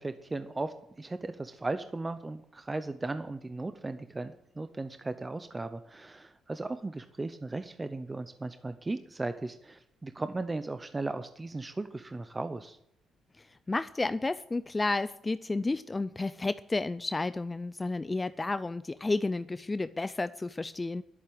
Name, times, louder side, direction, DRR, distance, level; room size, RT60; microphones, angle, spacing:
voice 1, 0.0-12.8, right 2 dB, 20° right, 10 dB, 0.7 m, -37 dB
voice 2, 13.4-21.0, left 3 dB, 20° left, 14 dB, 0.4 m, -31 dB
11.0 x 8.2 x 8.7 m, 0.75 s
cardioid pair, 90°, 0 cm